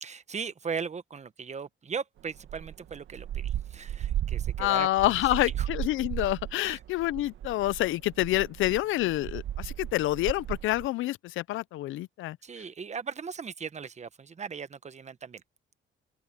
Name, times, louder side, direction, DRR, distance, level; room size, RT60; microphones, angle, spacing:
voice 1, 0.0-4.9 5.3-5.7 6.6-6.8 12.4-15.4, right 6 dB, 35° right, 1.2 m, -38 dB
sound 1, 2.4-10.9, right 11 dB, 75° right, 1.7 m, -35 dB
voice 2, 4.6-12.4, left 16 dB, 80° left, 0.5 m, -27 dB
cardioid pair, 90°, 20 cm